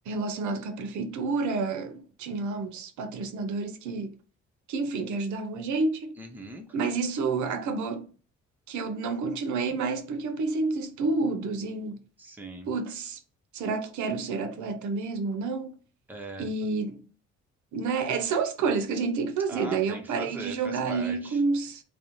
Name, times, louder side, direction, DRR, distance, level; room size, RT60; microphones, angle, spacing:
voice 1, 0.1-4.2 4.7-6.2 6.7-8.1 8.7-12.0 12.7-13.2 13.5-15.8 16.4-17.0 17.7-21.8, right 4 dB, 75° right, 0.6 m, -29 dB
voice 2, 6.2-6.8 12.2-12.7 16.1-16.5 19.5-21.4, right 2 dB, 5° right, 0.6 m, -40 dB
2.5 x 2.0 x 2.9 m
cardioid pair, 90°, 30 cm